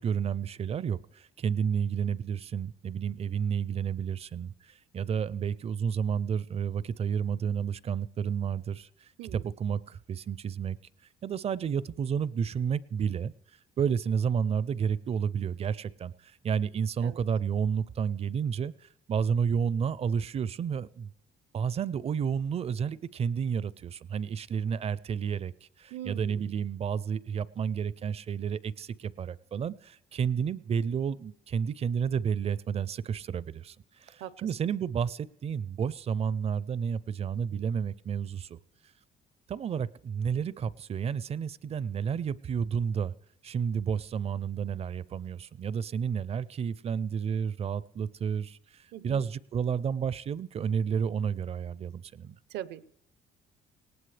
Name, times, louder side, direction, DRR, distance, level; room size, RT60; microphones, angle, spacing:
voice 1, 0.0-10.8 11.2-13.3 13.8-16.1 16.4-21.1 21.5-33.8 34.0-38.6 39.5-43.1 43.4-52.4, right 7 dB, 35° right, 20 dB, 0.5 m, -31 dB
voice 2, 9.2-9.5 17.0-17.2 25.9-26.5 34.2-34.5 48.9-49.2 52.5-52.8, right 12 dB, 80° right, 16 dB, 0.7 m, -41 dB
19.0 x 18.0 x 3.3 m, 0.70 s
cardioid pair, 110°, 17 cm